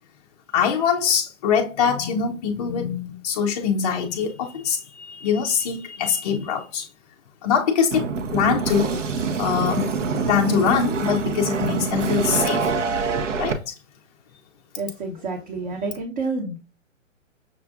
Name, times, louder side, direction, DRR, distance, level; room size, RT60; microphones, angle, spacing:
voice 1, 0.5-6.9 7.4-9.0 9.4-12.9 13.4-13.7, left 7 dB, 30° left, 0.4 m, -23 dB
sound 1, 7.9-13.5, right 5 dB, 70° right, 0.8 m, -25 dB
voice 2, 14.8-16.6, right 3 dB, 30° right, 0.8 m, -29 dB
6.0 x 2.3 x 2.3 m
hypercardioid pair, 130°, 39 cm